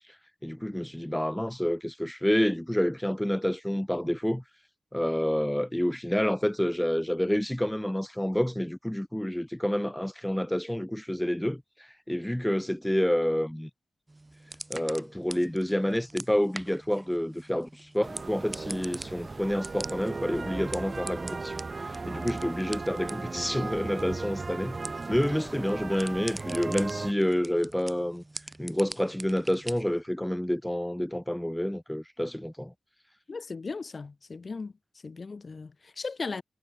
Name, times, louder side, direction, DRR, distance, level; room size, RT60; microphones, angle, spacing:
voice 1, 0.4-4.4 4.9-13.7 14.7-28.2 28.6-32.7, equal, 5° left, 1.9 m, -29 dB
sound 1, 14.1-30.0, right 2 dB, 20° right, 5.4 m, -45 dB
sound 2, 18.0-27.1, right 3 dB, 40° right, 4.5 m, -37 dB
voice 2, 25.1-25.5 33.3-34.7 35.0-36.4, left 4 dB, 45° left, 4.4 m, -37 dB
cardioid pair, 70°, 0 cm